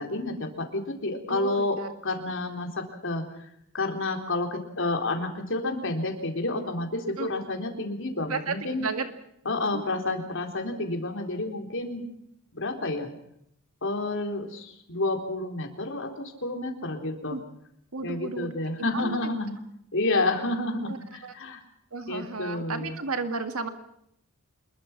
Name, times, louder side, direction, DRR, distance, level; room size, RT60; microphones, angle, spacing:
voice 1, 0.0-3.2 3.7-8.9 9.5-12.0 12.5-13.1 13.8-17.4 18.0-19.6 19.9-21.6 22.1-23.0, left 2 dB, 65° left, 4 dB, 4.0 m, -30 dB
voice 2, 1.3-1.9 7.2-7.3 8.3-9.1 9.7-9.8 17.3-17.4 17.9-18.5 18.8-19.2 20.9-21.0 21.2-21.3 21.9-23.7, right 4 dB, 85° right, 7 dB, 2.0 m, -33 dB
26.5 x 22.0 x 6.0 m, 0.75 s
head